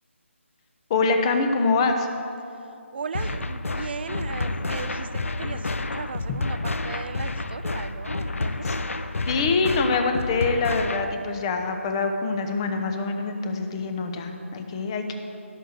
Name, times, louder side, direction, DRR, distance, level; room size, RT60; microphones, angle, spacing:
voice 1, 0.9-2.1 8.6-8.7 9.3-15.1, left 4 dB, 25° left, 5 dB, 0.9 m, -25 dB
voice 2, 2.6-8.8 14.1-14.2, right 5 dB, 50° right, 12 dB, 0.5 m, -37 dB
sound 1, 3.1-11.1, left 2 dB, 75° left, 0.7 m, -29 dB
15.5 x 6.5 x 6.5 m, 2.7 s
figure-of-eight pair, 160°, 7 cm